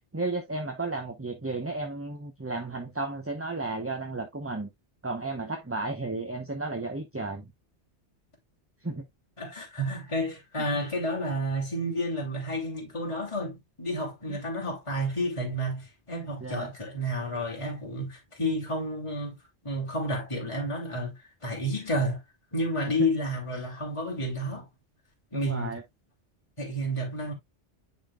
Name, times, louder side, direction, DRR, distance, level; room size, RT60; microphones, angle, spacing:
voice 1, 0.1-4.7 5.0-7.5 8.8-9.0 14.3-14.4 16.1-16.7 23.0-23.1 25.3-25.8, right 3 dB, 15° right, 0.8 m, -33 dB
voice 2, 9.4-19.4 19.6-22.2 22.5-24.7 25.3-25.8 26.6-27.3, equal, 25° left, 2.8 m, -31 dB
10.0 x 4.2 x 2.4 m
omnidirectional pair, 1.2 m